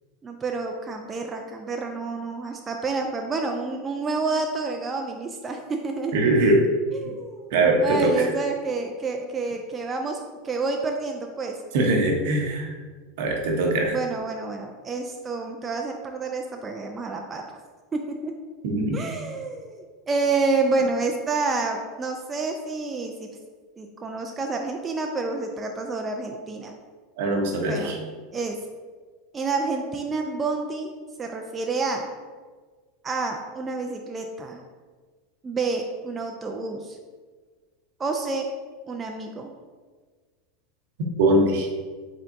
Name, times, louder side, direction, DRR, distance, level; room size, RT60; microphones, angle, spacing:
voice 1, 0.2-6.1 6.9-11.5 13.9-17.6 18.1-18.3 18.9-23.3 23.8-26.7 27.7-28.6 29.3-30.9 31.2-32.1 33.0-34.6 35.4-37.0 38.0-38.5 38.9-39.5, right 3 dB, 25° right, 3 dB, 0.4 m, -29 dB
voice 2, 6.1-6.6 7.5-8.3 11.7-12.7 13.2-13.9 18.6-19.0 27.2-28.0 41.2-41.7, right 2 dB, 70° right, 1 dB, 0.8 m, -21 dB
4.4 x 3.5 x 2.5 m, 1.5 s
hypercardioid pair, 95°, 0 cm